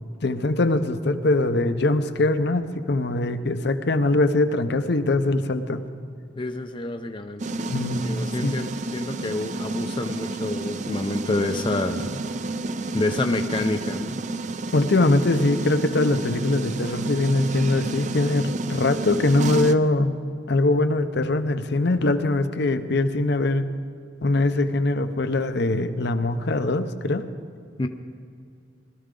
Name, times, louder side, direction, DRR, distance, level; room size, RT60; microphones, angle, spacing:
voice 1, 0.2-5.8 7.7-8.0 8.4-8.6 14.7-20.1 20.5-23.7 24.2-27.3, left 2 dB, 60° left, 10 dB, 0.7 m, -22 dB
voice 2, 6.4-12.2 12.9-14.2 27.8-27.9, left 2 dB, 25° left, 6 dB, 0.5 m, -28 dB
sound 1, 7.4-19.8, right 2 dB, 40° right, 0.4 m, -30 dB
19.5 x 13.5 x 3.8 m, 2.4 s
head